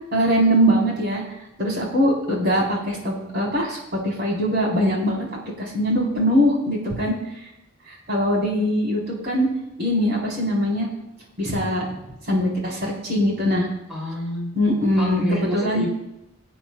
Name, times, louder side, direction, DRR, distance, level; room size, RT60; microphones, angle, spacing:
voice 1, 0.1-1.2 1.6-5.3 5.6-7.1 7.9-9.5 9.8-10.9 11.4-11.9 12.3-13.7 14.6-15.8, equal, 55° right, -3 dB, 3.8 m, -22 dB
voice 2, 13.9-14.5 15.0-15.9, equal, 5° right, -4 dB, 2.8 m, -28 dB
21.5 x 8.6 x 2.3 m, 0.87 s
head